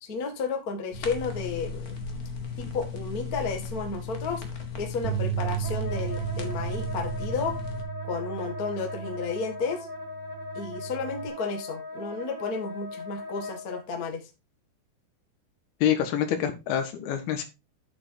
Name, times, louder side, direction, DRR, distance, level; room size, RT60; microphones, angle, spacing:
voice 1, 0.0-2.0 2.6-4.4 4.8-7.6 8.0-9.9 10.5-14.2, left 4 dB, 40° left, 4 dB, 1.3 m, -32 dB
sound 1, 0.9-7.8, left 5 dB, 60° left, 0.9 m, -36 dB
Bass guitar, 5.0-11.3, right 13 dB, 85° right, 2.6 m, -35 dB
Wind instrument woodwind instrument, 5.6-13.8, left 3 dB, 5° left, 1.9 m, -39 dB
voice 2, 15.8-17.4, left 9 dB, 80° left, 8 dB, 3.3 m, -26 dB
8.7 x 7.1 x 3.9 m, 0.26 s
omnidirectional pair, 4.4 m